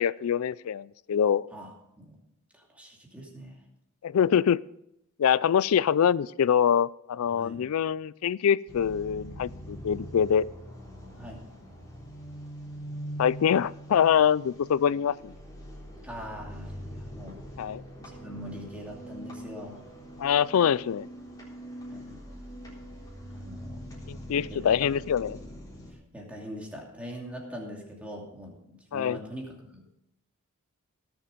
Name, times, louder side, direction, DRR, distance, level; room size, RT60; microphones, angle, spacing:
voice 1, 0.0-1.5 4.0-4.6 5.2-10.5 13.2-15.3 17.6-17.8 20.2-21.1 24.1-25.4 28.9-29.2, left 8 dB, 75° left, 21 dB, 0.4 m, -24 dB
voice 2, 2.5-3.6 7.3-7.6 11.2-11.4 16.0-17.4 18.0-19.8 21.9-22.2 23.3-23.8 24.2-24.7 25.2-25.4 26.1-29.9, equal, 5° right, -1 dB, 2.6 m, -42 dB
sound 1, 8.7-25.9, equal, 20° left, 3.7 m, -43 dB
17.5 x 7.2 x 5.1 m, 0.83 s
head